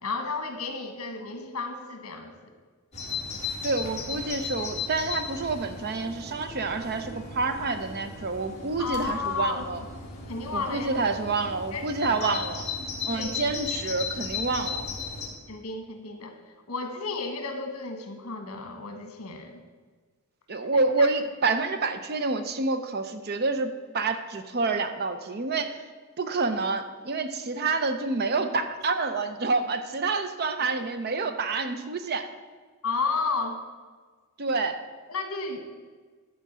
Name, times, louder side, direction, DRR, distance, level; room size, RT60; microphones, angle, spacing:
voice 1, 0.0-2.5 8.8-9.6 10.3-11.0 11.7-12.4 13.1-13.4 13.8-14.0 15.5-16.4 16.7-19.6 20.7-21.1 32.8-33.6 35.1-35.6, left 4 dB, 75° left, 5 dB, 1.4 m, -33 dB
Bird vocalization bird call bird song, 2.9-15.3, left 5 dB, 30° left, 2.0 m, -36 dB
voice 2, 3.6-9.8 10.5-12.7 13.0-15.0 20.5-25.8 26.2-32.3 34.4-34.8, right 3 dB, 45° right, 9 dB, 0.6 m, -28 dB
12.0 x 4.5 x 7.5 m, 1.5 s
head